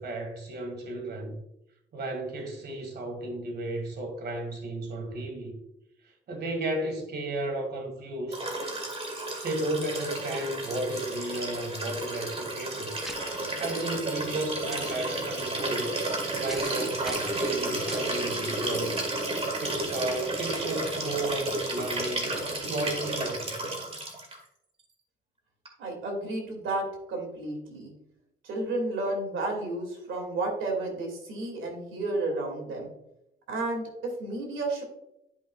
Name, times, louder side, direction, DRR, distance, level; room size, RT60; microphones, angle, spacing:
voice 1, 0.0-1.3 1.9-5.5 6.3-8.4 9.4-12.9 13.6-16.0 16.3-19.1 19.6-22.3 22.7-23.5, right 1 dB, 55° right, 3 dB, 1.8 m, -33 dB
Liquid, 8.3-24.4 25.6-25.7, right 2 dB, 30° right, 2.0 m, -32 dB
sound 1, 13.0-13.4 14.7-15.0 16.5-16.8 17.0-17.4 17.9-18.2, equal, ahead, 0.7 m, -42 dB
voice 2, 25.8-27.9 28.4-32.9 33.5-34.8, right 2 dB, 80° right, 1 dB, 2.4 m, -32 dB
10.5 x 5.2 x 2.4 m, 0.82 s
cardioid pair, 90°, 20 cm